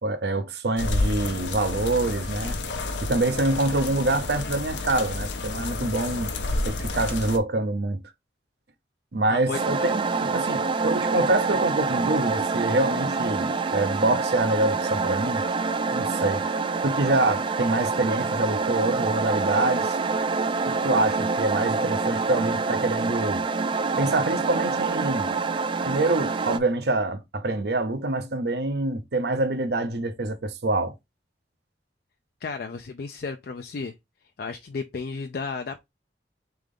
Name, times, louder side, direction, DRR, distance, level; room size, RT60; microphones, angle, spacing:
voice 1, 0.0-2.6 3.0-6.3 6.6-8.0 9.1-15.4 15.9-16.4 16.8-20.0 20.7-23.4 24.0-25.4 25.8-30.9, right 2 dB, 60° right, 0.7 m, -25 dB
sound 1, 0.8-7.4, left 2 dB, 90° left, 0.8 m, -30 dB
voice 2, 9.3-9.6 32.4-34.0 34.4-35.9, left 4 dB, 55° left, 0.4 m, -33 dB
sound 2, 9.5-26.6, right 4 dB, 30° right, 0.3 m, -26 dB
3.8 x 3.5 x 3.5 m
head